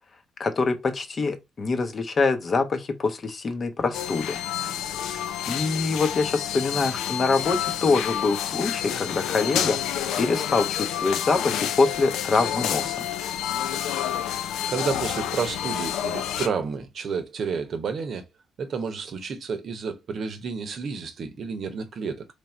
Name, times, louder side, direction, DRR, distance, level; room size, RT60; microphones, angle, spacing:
voice 1, 0.4-4.4 5.0-9.8 10.2-13.0, left 4 dB, 40° left, 0.8 m, -25 dB
sound 1, 3.9-16.5, left 10 dB, 85° left, 0.4 m, -29 dB
voice 2, 14.7-18.2 18.6-22.3, right 5 dB, 55° right, 0.8 m, -30 dB
3.3 x 2.6 x 4.3 m
cardioid pair, 90°, 0 cm